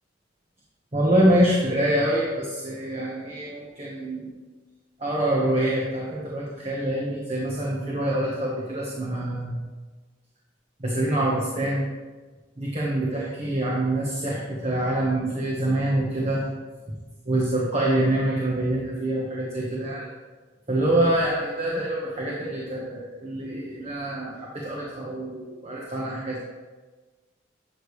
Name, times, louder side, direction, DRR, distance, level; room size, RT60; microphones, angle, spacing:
voice 1, 0.9-4.3 5.0-9.6 10.8-11.8 12.6-16.4 17.2-20.1 20.7-26.4, right 1 dB, 30° right, -4 dB, 1.3 m, -25 dB
12.0 x 6.7 x 3.3 m, 1.3 s
head